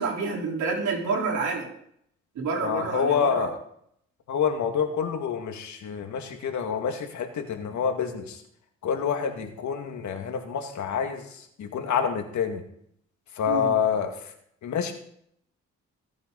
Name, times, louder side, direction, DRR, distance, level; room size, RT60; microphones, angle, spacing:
voice 1, 0.0-1.7 2.3-3.5 13.5-13.8, right 4 dB, 85° right, -1 dB, 4.4 m, -28 dB
voice 2, 2.6-3.6 4.3-8.4 8.8-12.6 13.3-14.3 14.6-14.9, left 7 dB, 80° left, 5 dB, 2.2 m, -27 dB
22.5 x 8.6 x 4.1 m, 0.68 s
cardioid pair, 75°, 29 cm